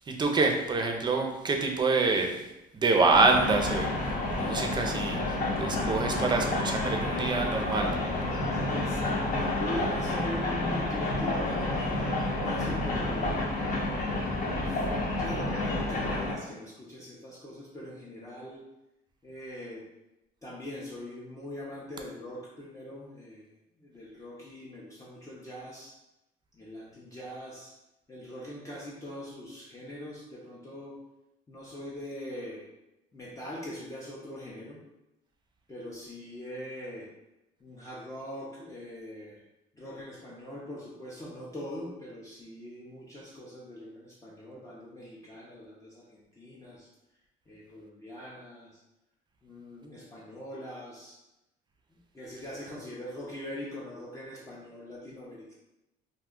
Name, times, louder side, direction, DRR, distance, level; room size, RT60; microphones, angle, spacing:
voice 1, 0.1-2.3 2.7-3.9 4.3-7.9, right 3 dB, 25° right, 3 dB, 0.5 m, -26 dB
sound 1, 3.1-16.3, left 2 dB, 55° left, 0.9 m, -30 dB
voice 2, 8.5-12.1 12.4-13.4 13.8-14.1 14.5-14.9 15.2-18.6 19.2-19.9 20.4-23.5 23.8-26.0 26.5-27.7 28.1-31.0 31.5-32.7 33.1-34.8 35.7-37.1 37.6-39.4 39.7-46.9 47.5-48.8 49.4-51.2 52.1-55.5, left 1 dB, 20° left, -6 dB, 0.6 m, -42 dB
2.5 x 2.2 x 3.6 m, 0.94 s
cardioid pair, 110°, 17 cm